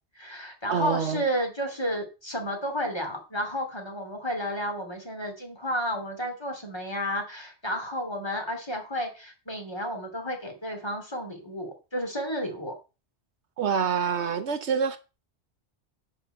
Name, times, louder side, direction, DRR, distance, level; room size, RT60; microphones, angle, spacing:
voice 1, 0.1-12.7, equal, 20° left, 2.9 m, -32 dB
voice 2, 0.7-1.2 13.6-15.0, right 7 dB, 75° right, 1.2 m, -26 dB
11.0 x 4.5 x 7.8 m
omnidirectional pair, 1.2 m